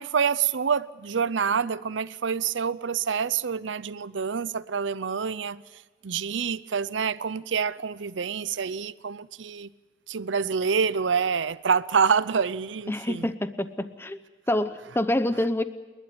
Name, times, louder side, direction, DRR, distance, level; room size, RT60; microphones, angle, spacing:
voice 1, 0.0-5.6 6.0-9.7 10.1-13.3, right 6 dB, 90° right, 0.6 m, -27 dB
voice 2, 12.9-14.2 14.5-15.6, left 1 dB, 15° left, 0.7 m, -27 dB
28.5 x 12.0 x 9.4 m
head